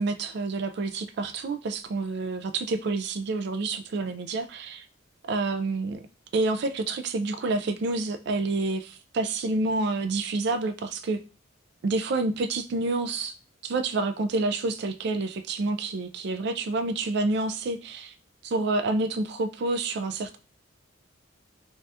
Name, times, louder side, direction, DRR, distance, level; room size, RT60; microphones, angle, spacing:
voice 1, 0.0-4.9 5.2-6.0 6.3-11.2 11.8-13.4 13.6-18.1 18.4-20.4, right 3 dB, 55° right, 9 dB, 0.3 m, -28 dB
2.6 x 2.3 x 3.3 m, 0.33 s
head